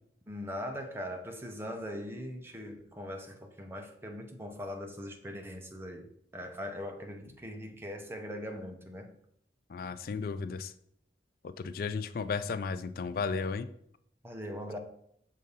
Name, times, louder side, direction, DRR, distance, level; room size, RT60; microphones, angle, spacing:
voice 1, 0.3-9.2 14.2-14.8, equal, 15° right, 3 dB, 0.7 m, -41 dB
voice 2, 9.7-10.7 11.4-13.7, left 5 dB, 55° left, 12 dB, 0.3 m, -34 dB
6.4 x 2.7 x 5.4 m, 0.70 s
head